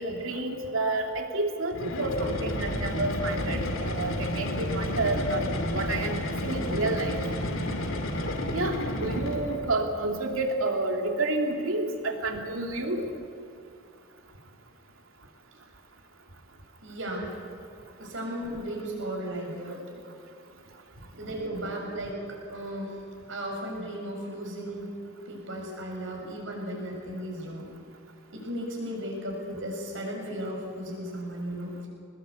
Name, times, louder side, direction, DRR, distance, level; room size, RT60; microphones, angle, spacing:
voice 1, 0.0-7.2 8.5-13.0, right 2 dB, 85° right, 3 dB, 2.8 m, -30 dB
sound 1, 1.7-9.7, left 1 dB, 80° left, 2.5 m, -31 dB
voice 2, 16.8-17.3 18.0-19.8 21.1-23.0 23.3-24.9 25.2-27.7 28.3-31.9, equal, 65° right, 0 dB, 6.5 m, -35 dB
22.5 x 20.5 x 8.3 m, 2.4 s
head